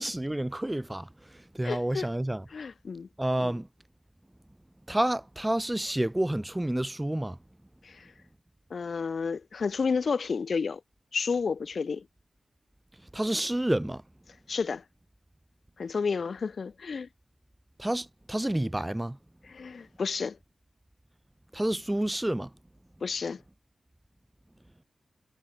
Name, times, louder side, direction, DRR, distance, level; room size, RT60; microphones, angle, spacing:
voice 1, 0.0-2.4 3.2-3.7 4.9-7.4 13.1-14.0 17.8-19.2 21.5-22.5, right 1 dB, 10° right, 0.8 m, -29 dB
voice 2, 1.6-2.1 2.5-3.1 7.8-8.1 8.7-10.8 11.1-12.1 14.5-14.8 15.8-17.1 19.4-20.4 23.0-23.4, left 5 dB, 65° left, 0.6 m, -31 dB
wide cardioid pair, 90°, 0 cm